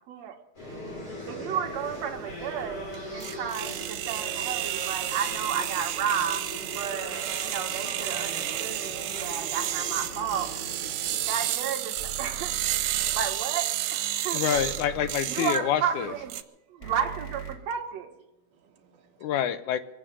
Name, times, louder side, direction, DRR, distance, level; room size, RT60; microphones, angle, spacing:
voice 1, 0.1-0.4 1.3-10.5 11.2-12.6 13.1-14.7 15.3-16.4 16.7-18.1, right 8 dB, 60° right, 2.1 m, -32 dB
sound 1, 0.5-11.5, equal, 45° left, 7.0 m, -40 dB
voice 2, 0.9-1.3 11.0-11.3 16.8-16.9 18.5-19.4, right 7 dB, 45° right, 1.9 m, -60 dB
sound 2, 1.7-16.4, right 13 dB, 85° right, 2.4 m, -32 dB
sound 3, 12.0-13.2 14.5-15.1 16.8-17.5, right 7 dB, 10° left, 1.8 m, -40 dB
voice 3, 14.3-16.1 19.2-19.8, left 10 dB, 75° left, 2.0 m, -27 dB
23.5 x 8.7 x 6.6 m
omnidirectional pair, 3.7 m